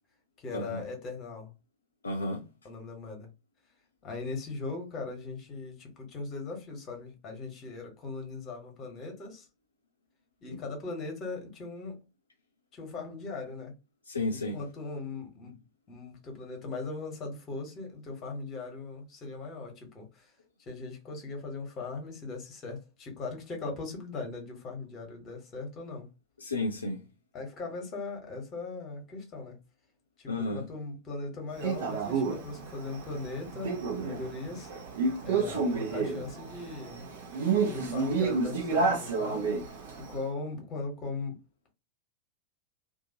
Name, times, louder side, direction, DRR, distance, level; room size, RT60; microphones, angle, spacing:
voice 1, 0.4-1.5 2.6-3.3 4.0-9.5 10.4-12.0 12.7-13.8 14.3-15.6 15.9-20.3 20.7-26.1 27.3-29.6 30.2-34.7 35.2-37.1 37.6-39.7 40.0-41.4, left 3 dB, 30° left, 1.1 m, -39 dB
voice 2, 2.0-2.4 14.1-14.6 26.4-27.0 30.3-30.6, left 2 dB, 75° left, 0.5 m, -32 dB
Male speech man speaking, 31.6-40.1, right 4 dB, 55° right, 0.8 m, -30 dB
2.6 x 2.4 x 2.7 m
figure-of-eight pair, 90°, 0 cm